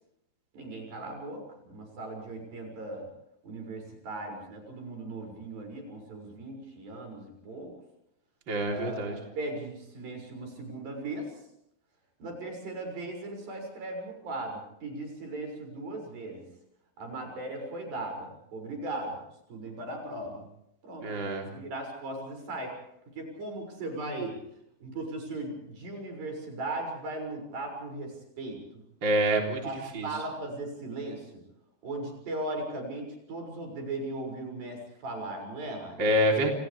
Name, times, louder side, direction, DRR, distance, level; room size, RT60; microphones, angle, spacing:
voice 1, 0.5-3.1 3.4-7.7 8.7-11.3 12.2-16.4 17.0-19.2 19.5-20.5 20.8-21.1 21.5-22.8 23.2-24.4 24.8-28.6 29.6-29.7 30.0-31.4 31.8-36.1, right 2 dB, 85° right, 3 dB, 8.4 m, -38 dB
voice 2, 8.5-9.2 21.0-21.5 29.0-29.6 29.9-30.1 36.0-36.5, equal, 35° right, 1 dB, 4.1 m, -26 dB
29.5 x 29.0 x 3.5 m, 0.78 s
omnidirectional pair, 4.0 m